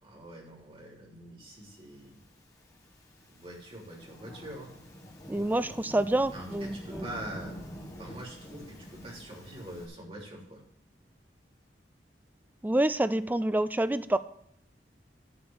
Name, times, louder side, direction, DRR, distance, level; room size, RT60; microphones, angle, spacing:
voice 1, 0.0-2.2 3.3-4.7 6.3-7.6 8.0-10.6, right 1 dB, 30° right, -2 dB, 3.3 m, -44 dB
Thunderstorm / Rain, 2.2-9.9, equal, 20° left, 2.1 m, -46 dB
voice 2, 5.3-7.1 12.6-14.2, right 1 dB, 10° right, 13 dB, 0.4 m, -27 dB
12.0 x 4.8 x 7.1 m, 0.73 s
head